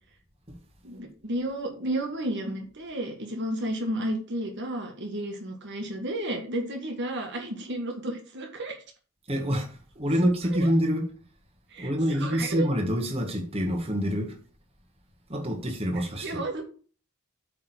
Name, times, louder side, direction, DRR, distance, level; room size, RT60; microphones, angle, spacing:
voice 1, 0.8-8.8 10.5-10.7 11.7-12.7 16.2-16.6, right 1 dB, 55° right, 1.6 m, -32 dB
voice 2, 9.3-11.1 11.8-14.4 15.3-16.4, equal, 30° right, 1.8 m, -26 dB
8.6 x 3.8 x 6.1 m
head